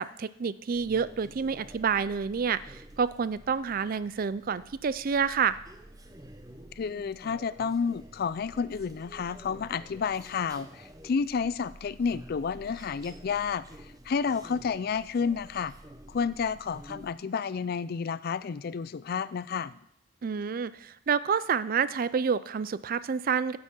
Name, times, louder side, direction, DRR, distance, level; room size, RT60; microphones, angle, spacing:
voice 1, 0.0-5.6 20.2-23.6, right 6 dB, 45° right, 16 dB, 0.4 m, -28 dB
sound 1, 0.7-17.1, right 1 dB, 20° right, 0.8 m, -50 dB
voice 2, 6.8-13.6 14.0-15.7 16.1-19.7, left 6 dB, 50° left, 17 dB, 0.4 m, -30 dB
10.5 x 6.8 x 7.3 m, 0.71 s
head